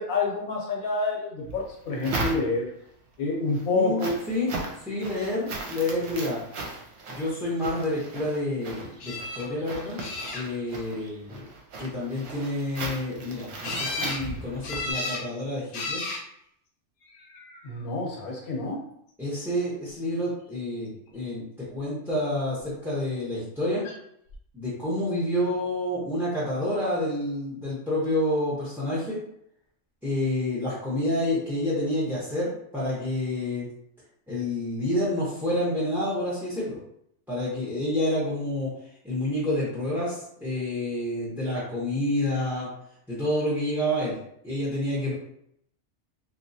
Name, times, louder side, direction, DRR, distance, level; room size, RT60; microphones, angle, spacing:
voice 1, 0.0-2.7 3.2-4.1 17.6-18.8, left 3 dB, 85° left, -1 dB, 1.3 m, -28 dB
sound 1, 1.4-2.9 3.3-14.9, right 3 dB, 60° right, 0.9 m, -37 dB
voice 2, 3.7-4.6 4.8-6.4 7.1-10.0 10.3-11.4 11.8-16.0 19.2-23.8 24.5-29.2 30.0-33.7 34.3-36.8 37.3-38.7 39.0-42.7 43.1-44.2 44.4-45.1, left 1 dB, ahead, -8 dB, 0.5 m, -28 dB
sound 2, 9.0-9.4 10.0-10.7 13.6-14.2 14.6-15.2 15.7-16.2 17.1-17.6 23.8-24.0 24.3-24.4, left 3 dB, 60° left, 0.8 m, -33 dB
3.1 x 2.6 x 2.7 m, 0.73 s
omnidirectional pair, 1.4 m